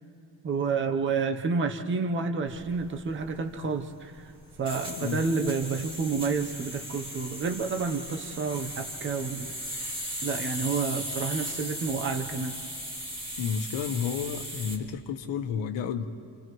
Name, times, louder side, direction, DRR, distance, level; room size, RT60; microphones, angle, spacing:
voice 1, 0.4-4.3 4.6-9.5 10.2-12.6, right 4 dB, 25° right, 5 dB, 0.9 m, -29 dB
sound 1, 2.5-14.8, equal, 10° right, 2.2 m, -38 dB
voice 2, 13.4-16.0, left 7 dB, 75° left, 6 dB, 1.2 m, -31 dB
29.0 x 29.0 x 3.1 m, 2.4 s
cardioid pair, 150°, 44 cm